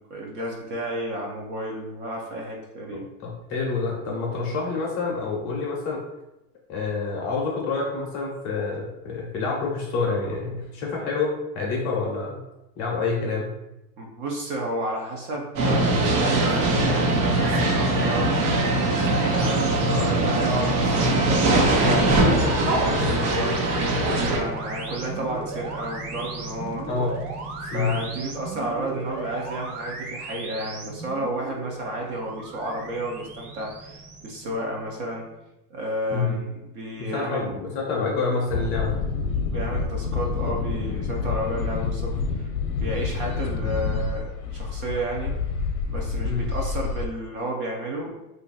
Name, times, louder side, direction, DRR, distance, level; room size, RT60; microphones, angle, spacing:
voice 1, 0.0-3.1 14.0-18.5 19.1-23.6 24.1-27.0 27.6-35.3 35.7-37.5 39.4-42.5 42.8-45.3 45.9-48.2, right 1 dB, 35° right, -1 dB, 0.5 m, -32 dB
voice 2, 2.9-6.0 6.7-12.4 12.8-13.5 20.0-20.2 26.9-27.2 27.7-28.0 36.1-36.4 37.0-39.0 46.2-46.4, left 4 dB, 30° left, -2 dB, 0.6 m, -27 dB
sound 1, 15.6-24.4, right 2 dB, 90° right, 1.1 m, -21 dB
sound 2, 20.7-35.3, right 3 dB, 70° right, 0.8 m, -36 dB
sound 3, 38.5-47.1, left 5 dB, 65° left, 0.7 m, -28 dB
2.9 x 2.5 x 3.9 m, 0.94 s
supercardioid pair, 165°, 47 cm